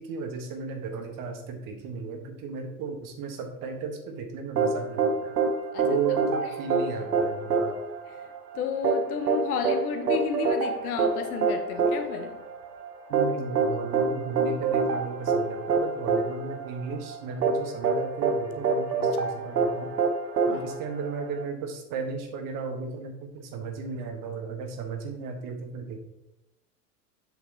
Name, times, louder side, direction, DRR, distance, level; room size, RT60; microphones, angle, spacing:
voice 1, 0.0-5.3 5.8-7.8 13.1-19.9 20.5-26.0, right 5 dB, 45° right, 4 dB, 1.5 m, -35 dB
sound 1, 4.6-21.4, right 5 dB, 80° right, 1.2 m, -26 dB
voice 2, 5.7-6.2 6.4-6.6 8.0-12.4 20.5-20.8, left 6 dB, 65° left, 5 dB, 1.3 m, -33 dB
8.0 x 6.7 x 3.0 m, 0.91 s
figure-of-eight pair, 85°, 47 cm